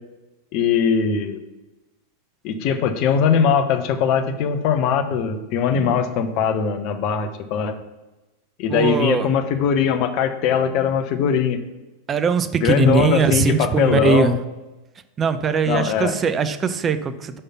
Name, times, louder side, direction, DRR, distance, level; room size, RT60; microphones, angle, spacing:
voice 1, 0.5-1.4 2.4-7.7 8.6-11.6 12.6-14.3 15.7-16.2, left 7 dB, 40° left, 7 dB, 0.7 m, -20 dB
voice 2, 8.7-9.3 12.1-14.4 15.2-17.4, right 5 dB, 25° right, 11 dB, 0.5 m, -20 dB
4.9 x 4.3 x 5.6 m, 1.1 s
figure-of-eight pair, 90°, 0 cm